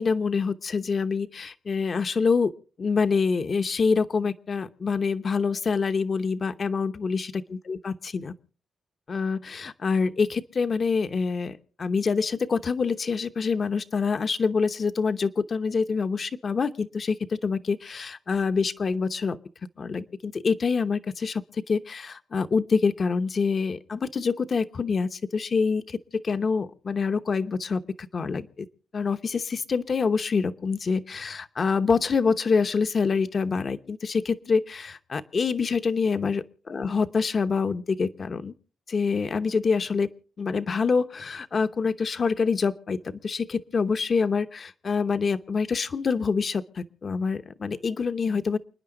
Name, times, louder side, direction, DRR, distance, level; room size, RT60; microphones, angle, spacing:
voice 1, 0.0-2.5 2.8-8.3 9.1-19.4 19.8-28.7 28.9-38.5 38.9-40.1 40.4-48.6, left 5 dB, 40° left, 11 dB, 0.9 m, -26 dB
29.0 x 10.0 x 3.8 m, 0.42 s
wide cardioid pair, 135°, 0 cm